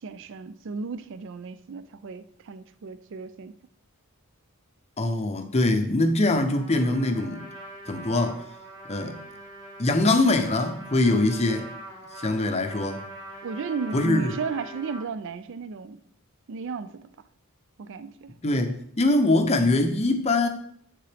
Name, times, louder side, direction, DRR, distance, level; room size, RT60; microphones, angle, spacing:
voice 1, 0.0-3.5 13.4-16.0 16.5-17.1 17.8-18.3, right 4 dB, 55° right, 0.4 m, -34 dB
voice 2, 5.0-7.5 7.9-8.4 8.9-9.2 9.8-11.7 12.1-13.0 13.9-14.3 18.4-20.5, left 2 dB, 30° left, 0.6 m, -23 dB
Trumpet, 6.5-15.0, right 1 dB, 20° right, 1.7 m, -43 dB
9.8 x 3.7 x 3.3 m
head